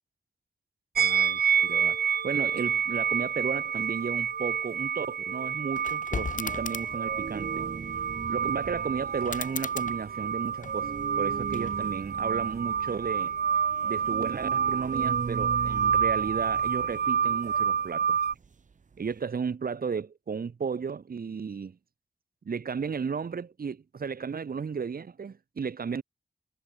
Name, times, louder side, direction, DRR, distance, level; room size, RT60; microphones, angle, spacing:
sound 1, 0.9-18.3, right 7 dB, 90° right, 0.7 m, -28 dB
voice 1, 1.0-2.0 2.2-7.6 8.3-13.3 13.8-18.2 19.0-21.8 22.4-26.0, right 6 dB, 70° right, 1.1 m, -34 dB
sound 2, 5.7-7.1 9.2-11.0 11.5-12.1, left 5 dB, 55° left, 1.0 m, -38 dB
sound 3, 6.4-19.2, right 5 dB, 55° right, 0.7 m, -40 dB
wide cardioid pair, 80°, 16 cm